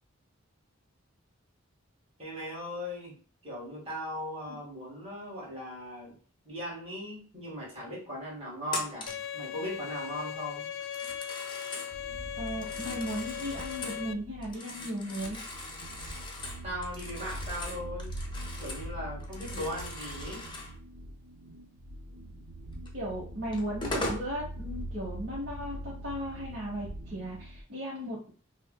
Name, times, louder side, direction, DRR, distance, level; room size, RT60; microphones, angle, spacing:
voice 1, 2.2-6.1 6.4-10.7 16.6-18.1 18.6-20.4, equal, 30° right, -5 dB, 1.6 m, -38 dB
Telephone, 8.7-9.3 10.8-11.9 12.5-14.0 14.4-18.9 19.2-20.8 22.9-23.0 23.5-24.3, left 2 dB, 20° left, 0.6 m, -40 dB
Bowed string instrument, 9.1-14.1, left 9 dB, 70° left, 0.3 m, -39 dB
sound 1, 11.9-27.6, right 1 dB, 90° right, 0.6 m, -43 dB
voice 2, 12.3-15.4 22.9-28.3, equal, 50° right, -5 dB, 1.0 m, -36 dB
5.5 x 2.1 x 2.2 m, 0.40 s
head